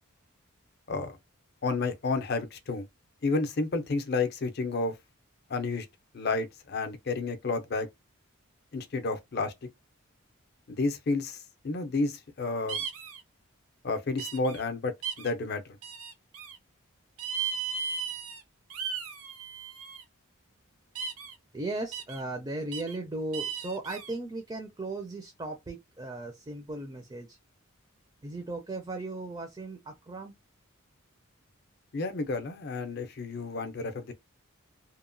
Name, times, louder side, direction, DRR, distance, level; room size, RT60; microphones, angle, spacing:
voice 1, 1.6-2.9 3.2-4.9 5.5-5.9 6.1-7.9 8.7-9.7 10.7-12.8 13.8-15.6 31.9-34.1, left 3 dB, 50° left, 0.5 m, -31 dB
sound 1, 12.7-13.2 14.2-14.6 15.0-15.3 15.8-16.6 17.2-18.4 18.7-20.0 20.9-21.3 21.9-22.2 22.7-23.0 23.3-24.1, right 6 dB, 80° right, 0.5 m, -36 dB
voice 2, 21.5-27.4 28.2-30.4, right 2 dB, 20° right, 0.4 m, -37 dB
2.9 x 2.1 x 2.5 m
head